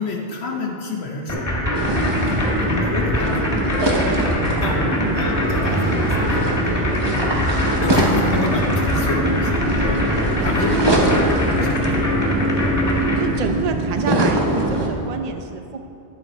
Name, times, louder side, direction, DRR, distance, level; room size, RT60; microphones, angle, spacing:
voice 1, 0.0-1.7 2.2-3.5 4.6-6.8 7.8-10.0 10.4-11.2 11.5-12.0, left 3 dB, 60° left, 0 dB, 1.3 m, -29 dB
sound 1, 1.3-13.2, left 1 dB, 15° left, 2.8 m, -23 dB
sound 2, 1.7-14.9, right 1 dB, 25° right, 1.0 m, -22 dB
voice 2, 10.6-11.0 11.3-11.4 13.1-15.8, right 4 dB, 45° right, 6 dB, 0.6 m, -28 dB
11.5 x 7.8 x 4.3 m, 2.7 s
omnidirectional pair, 1.2 m